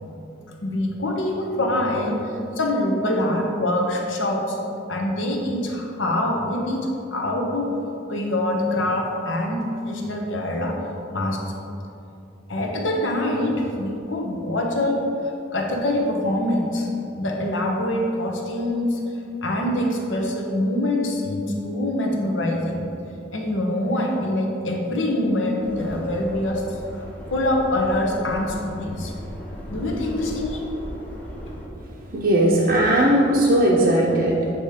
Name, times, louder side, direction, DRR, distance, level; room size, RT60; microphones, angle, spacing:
voice 1, 0.6-2.2 2.6-4.6 4.9-7.8 8.1-10.8 11.1-11.4 12.5-15.0 15.5-16.9 17.1-19.0 19.4-22.9 23.3-26.6 26.9-27.0 27.3-29.1 29.7-30.7, left 1 dB, 70° left, 0 dB, 1.0 m, -24 dB
Subway metro underground, 25.6-31.7, equal, 10° left, 0.8 m, -37 dB
voice 2, 31.9-34.5, right 1 dB, 50° right, -4 dB, 0.7 m, -18 dB
8.4 x 3.0 x 4.9 m, 2.8 s
head